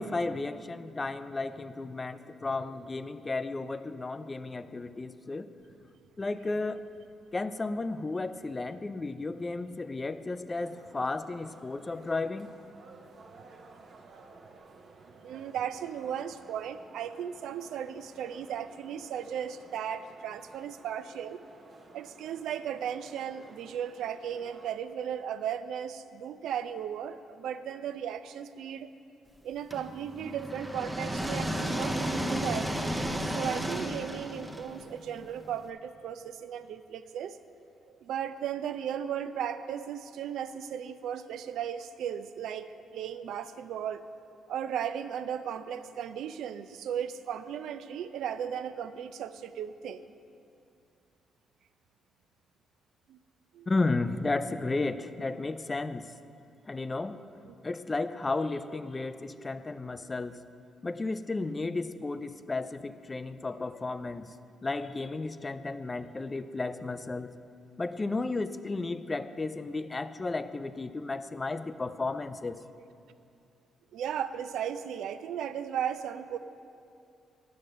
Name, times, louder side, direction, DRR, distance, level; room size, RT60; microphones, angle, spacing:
voice 1, 0.0-5.5 6.2-6.8 7.3-12.5 53.7-56.1 56.7-57.2 57.6-60.4 60.8-64.3 64.6-67.3 67.8-72.6, left 3 dB, 25° left, 13 dB, 0.4 m, -33 dB
sound 1, 10.5-24.8, right 3 dB, 50° right, 0.9 m, -54 dB
voice 2, 15.2-21.4 21.9-28.9 29.4-37.4 37.9-44.1 44.5-50.1 53.1-53.2 53.5-53.7 73.9-76.4, right 9 dB, 80° right, 12 dB, 0.4 m, -36 dB
sound 2, 29.7-35.6, equal, 10° right, 0.7 m, -33 dB
10.0 x 6.4 x 6.6 m, 2.5 s
cardioid pair, 90°, 0 cm